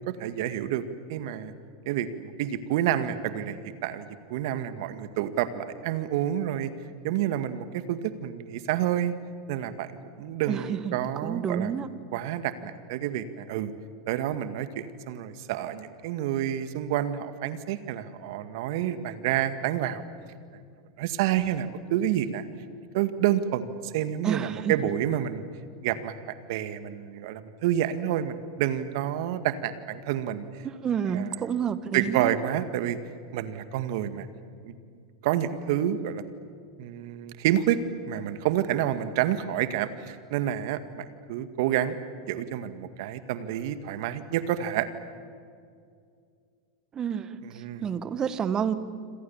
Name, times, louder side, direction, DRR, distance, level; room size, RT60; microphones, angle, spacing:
voice 1, 0.1-0.8 1.1-1.5 1.9-6.7 7.0-9.1 9.5-9.9 10.2-11.7 12.1-13.7 14.1-20.0 21.0-22.4 22.9-25.5 25.8-26.1 26.5-30.7 31.1-31.5 31.9-33.0 33.3-34.3 34.6-34.7 35.2-36.2 36.8-37.8 38.0-42.0 42.3-44.9 47.4-47.9, right 11 dB, 60° right, 11 dB, 2.0 m, -29 dB
voice 2, 10.5-10.8 11.2-11.9 24.2-24.7 30.8-32.3 46.9-47.3 47.8-48.7, right 8 dB, 30° right, 13 dB, 1.7 m, -28 dB
28.0 x 26.5 x 7.3 m, 2.3 s
hypercardioid pair, 95°, 2 cm